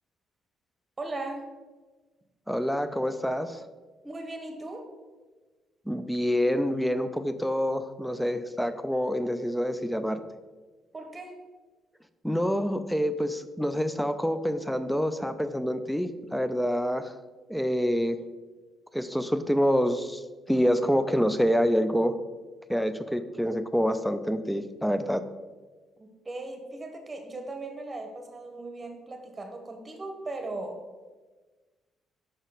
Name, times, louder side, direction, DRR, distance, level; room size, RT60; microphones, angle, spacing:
voice 1, 1.0-1.5 4.0-4.9 10.9-11.3 26.0-30.8, right 2 dB, 20° right, 4 dB, 1.1 m, -38 dB
voice 2, 2.5-3.6 5.9-10.2 12.2-17.1 17.5-18.2 18.9-20.2 20.5-22.2 22.7-25.2, equal, ahead, 11 dB, 0.4 m, -27 dB
6.2 x 5.1 x 4.0 m, 1.3 s
cardioid pair, 135°, 0 cm